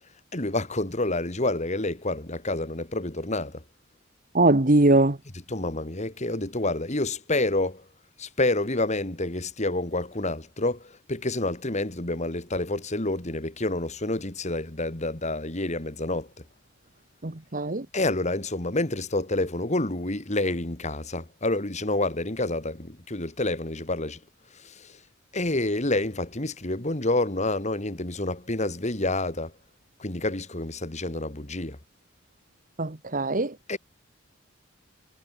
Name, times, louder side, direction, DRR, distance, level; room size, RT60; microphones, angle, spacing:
voice 1, 0.3-3.6 5.5-7.8 8.2-16.3 17.9-24.2 24.5-25.0 25.3-29.5 30.0-31.8 33.7-33.8, left 2 dB, 35° left, 2.5 m, -28 dB
voice 2, 4.3-5.2 17.2-17.8 32.8-33.5, right 2 dB, 40° right, 1.4 m, -21 dB
head